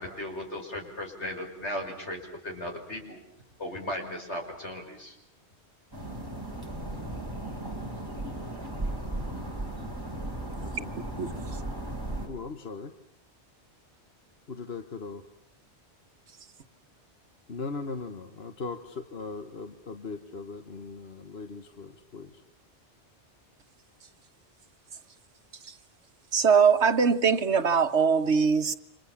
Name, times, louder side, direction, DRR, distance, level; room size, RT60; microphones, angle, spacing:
voice 1, 0.0-3.2 3.6-5.2, left 1 dB, 80° left, 6.1 m, -36 dB
sound 1, 5.9-12.3, right 1 dB, 20° right, 4.3 m, -36 dB
voice 2, 10.6-10.9 11.3-11.5 12.2-12.9 14.5-15.2 17.5-22.4, left 4 dB, 65° left, 1.6 m, -39 dB
voice 3, 26.3-28.7, right 6 dB, 80° right, 1.7 m, -22 dB
30.0 x 25.5 x 7.4 m
omnidirectional pair, 1.1 m